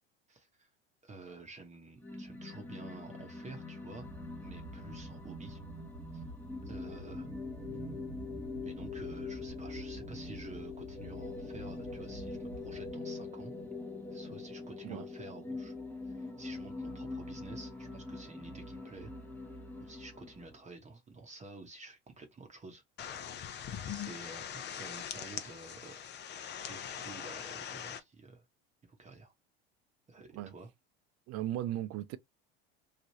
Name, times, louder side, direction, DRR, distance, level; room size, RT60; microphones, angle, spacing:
voice 1, 0.3-0.7 1.0-4.1 4.4-5.6 6.1-6.2 6.6-7.3 8.6-13.5 14.1-15.7 16.0-19.1 19.8-22.8 23.8-26.0 26.6-28.4 28.9-29.3 30.1-30.7, right 3 dB, 25° right, 0.9 m, -50 dB
sound 1, 2.0-20.6, left 3 dB, 5° left, 0.8 m, -43 dB
sound 2, 4.0-12.9, right 2 dB, 75° right, 1.5 m, -49 dB
sound 3, 23.0-28.0, left 8 dB, 35° left, 0.6 m, -42 dB
voice 2, 31.3-32.2, right 13 dB, 50° right, 0.5 m, -36 dB
3.2 x 2.4 x 2.7 m
hypercardioid pair, 90°, 30 cm